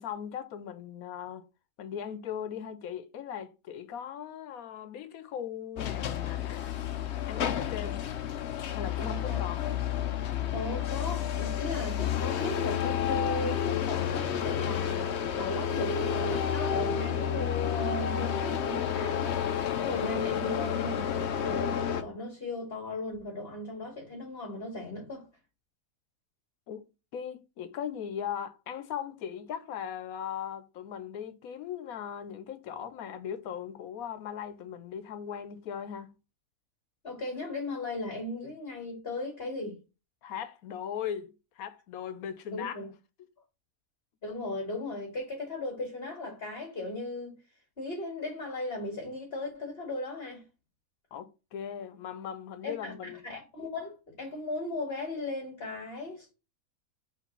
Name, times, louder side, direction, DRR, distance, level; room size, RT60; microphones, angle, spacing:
voice 1, 0.0-1.4 1.8-6.6 7.3-8.1 8.7-9.6 26.7-36.1 40.2-42.8 51.1-53.2, left 8 dB, 90° left, 1.2 m, -39 dB
sound 1, 5.8-22.0, left 9 dB, 60° left, 0.9 m, -30 dB
voice 2, 9.0-9.4 10.5-19.4 19.8-21.1 21.4-25.2 37.0-39.8 42.5-42.9 44.2-47.4 47.8-50.4 52.6-56.3, left 2 dB, 40° left, 2.8 m, -37 dB
5.0 x 3.7 x 5.3 m
omnidirectional pair, 1.5 m